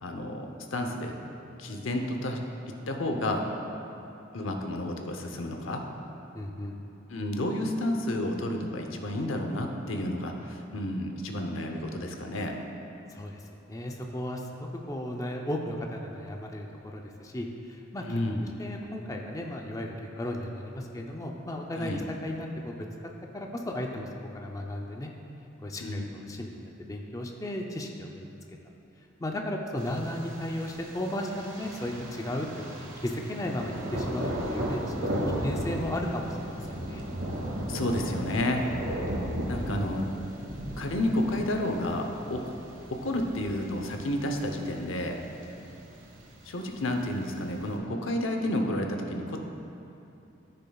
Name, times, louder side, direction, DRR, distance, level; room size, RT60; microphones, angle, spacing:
voice 1, 0.0-1.1 1.6-2.4 2.9-3.4 4.3-5.8 7.1-12.5 18.0-18.5 21.7-22.0 25.8-26.0 26.3-26.4 37.7-38.6 39.5-40.1 40.8-42.4 42.9-45.2 46.4-49.4, left 1 dB, 90° left, 3 dB, 0.8 m, -31 dB
voice 2, 6.3-6.8 13.1-13.4 13.7-14.5 14.9-18.2 18.6-22.8 23.3-25.1 25.6-28.3 29.2-32.5 32.8-34.8 35.4-37.0 39.7-39.9, left 1 dB, 15° left, 1 dB, 0.5 m, -35 dB
Thunder, 29.8-47.8, right 1 dB, 85° right, 1.3 m, -36 dB
13.5 x 6.7 x 2.3 m, 2.9 s
head